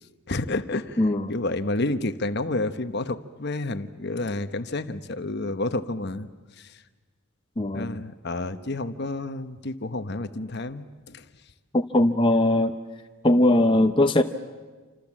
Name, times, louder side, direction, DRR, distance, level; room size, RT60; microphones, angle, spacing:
voice 1, 0.3-6.3 6.6-6.8 7.7-11.2, left 2 dB, 50° left, 10 dB, 1.1 m, -30 dB
voice 2, 1.0-1.3 7.6-8.0 11.7-12.7 13.2-14.2, left 1 dB, 25° left, 5 dB, 0.7 m, -20 dB
28.0 x 26.0 x 7.4 m, 1.4 s
head